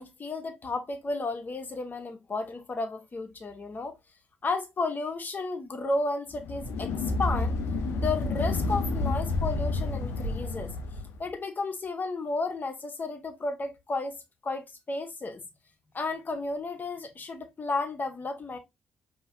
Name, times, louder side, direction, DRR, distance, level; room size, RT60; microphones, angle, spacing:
voice 1, 0.0-4.0 4.4-6.9 7.2-7.5 7.9-10.7 11.2-14.2 14.4-15.4 15.9-18.6, left 3 dB, 40° left, 1.1 m, -33 dB
sound 1, 6.3-11.2, left 3 dB, 65° left, 0.6 m, -29 dB
5.4 x 2.9 x 2.6 m
hypercardioid pair, 40°, 5 cm